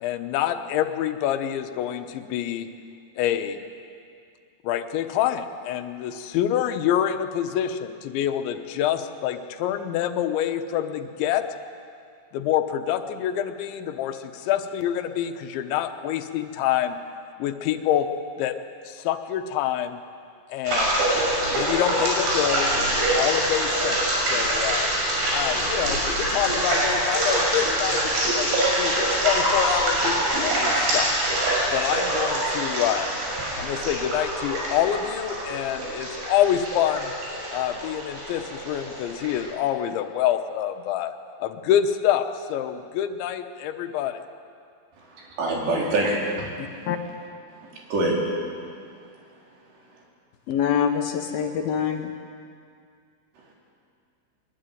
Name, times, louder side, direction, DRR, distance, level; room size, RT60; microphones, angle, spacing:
voice 1, 0.0-2.7 3.2-3.6 4.6-11.5 12.3-17.0 17.4-18.1 18.4-18.5 18.9-20.0 20.5-21.1 21.5-24.0 24.3-24.9 25.3-28.5 28.8-31.1 31.7-33.1 33.6-37.1 37.5-41.1 41.4-44.2, left 10 dB, 90° left, 8 dB, 3.5 m, -26 dB
sound 1, 20.7-39.5, right 1 dB, 85° right, 8.9 m, -25 dB
voice 2, 45.1-46.5 47.6-48.1, right 2 dB, 70° right, -2 dB, 6.4 m, -25 dB
voice 3, 46.6-47.0 50.5-52.1, left 8 dB, 70° left, 5 dB, 2.7 m, -25 dB
22.5 x 22.0 x 9.4 m, 2.2 s
omnidirectional pair, 5.1 m